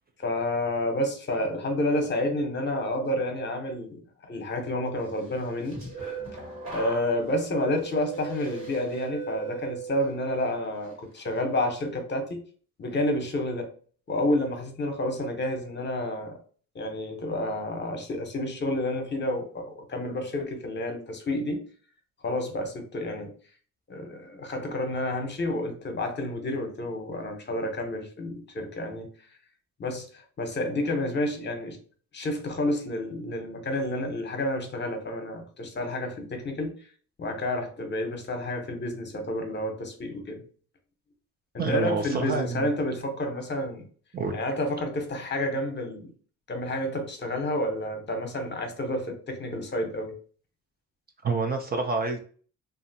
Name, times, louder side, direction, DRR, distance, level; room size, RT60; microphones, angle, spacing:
voice 1, 0.2-4.0 4.3-5.8 6.7-12.4 12.8-13.7 14.1-16.4 16.7-21.6 22.2-23.3 23.9-29.1 29.8-31.8 32.1-36.8 37.2-40.4 41.5-43.9 44.3-46.1 46.5-50.1, left 1 dB, 35° left, 0.8 m, -30 dB
sound 1, 5.3-10.4 10.8-11.2, right 5 dB, 70° right, 1.5 m, -39 dB
voice 2, 41.6-42.7 44.1-44.4 51.2-52.2, right 4 dB, 30° right, 0.4 m, -28 dB
2.7 x 2.5 x 2.7 m
cardioid pair, 90°, 30 cm